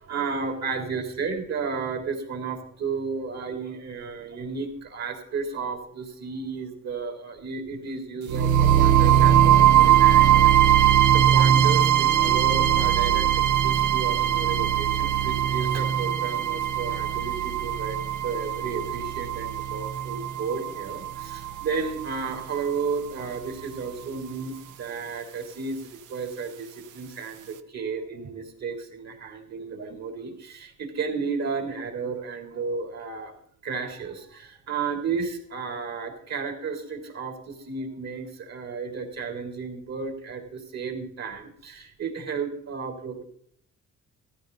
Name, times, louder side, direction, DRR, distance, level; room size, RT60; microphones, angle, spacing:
voice 1, 0.0-33.3 33.6-43.2, right 5 dB, 60° right, 4 dB, 3.5 m, -33 dB
sound 1, 8.3-22.3, right 10 dB, 85° right, 0.9 m, -20 dB
14.0 x 13.0 x 4.0 m, 0.64 s
cardioid pair, 90°, 30 cm